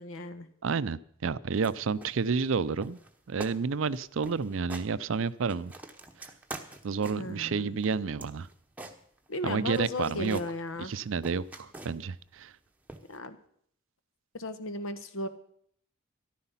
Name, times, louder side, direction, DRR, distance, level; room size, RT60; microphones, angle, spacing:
voice 1, 0.0-0.5 7.2-7.7 9.3-10.9 13.1-13.4 14.3-15.3, left 1 dB, 75° left, 10 dB, 1.2 m, -35 dB
voice 2, 0.6-3.0 3.3-5.7 6.8-8.5 9.4-10.4 10.9-12.5, right 5 dB, 65° right, 17 dB, 0.5 m, -30 dB
sound 1, 1.5-1.7 2.0-2.6 2.8-3.1 3.4-3.6 3.9-4.0 4.2-4.9 5.3-7.3 7.8-9.4 9.7-10.5 10.9-12.2 12.9-13.2, right 2 dB, 5° right, 1.0 m, -45 dB
14.0 x 11.5 x 5.7 m, 0.65 s
head